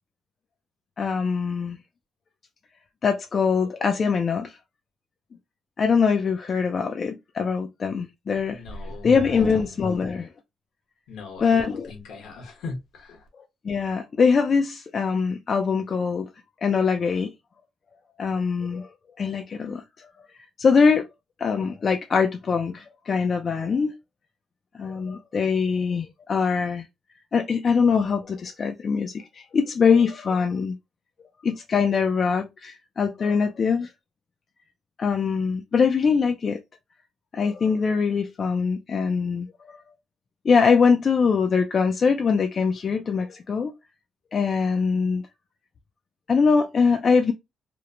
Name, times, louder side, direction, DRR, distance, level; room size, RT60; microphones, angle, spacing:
voice 1, 1.0-1.8 3.0-4.5 5.8-8.6 9.0-10.3 11.4-11.9 13.6-16.3 16.6-17.3 18.2-18.9 19.2-20.1 20.6-21.1 21.4-23.9 24.7-26.9 27.3-30.7 31.4-33.9 35.0-36.6 37.3-39.8 40.4-43.7 44.3-45.2 46.3-47.3, left 5 dB, 45° left, 0.4 m, -23 dB
voice 2, 8.5-9.6 11.1-13.2, left 3 dB, 80° left, 1.0 m, -39 dB
3.0 x 2.0 x 2.3 m
cardioid pair, 90°, 0 cm